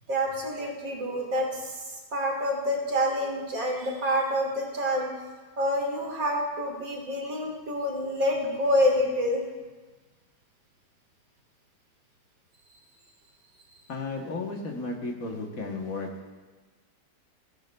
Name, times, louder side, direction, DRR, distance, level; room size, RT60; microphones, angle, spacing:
voice 1, 0.1-1.8 2.1-5.1 5.6-9.4, equal, 55° right, 1 dB, 2.0 m, -27 dB
voice 2, 13.9-16.3, left 3 dB, 55° left, 1 dB, 1.3 m, -34 dB
16.0 x 10.0 x 2.2 m, 1.3 s
omnidirectional pair, 1.9 m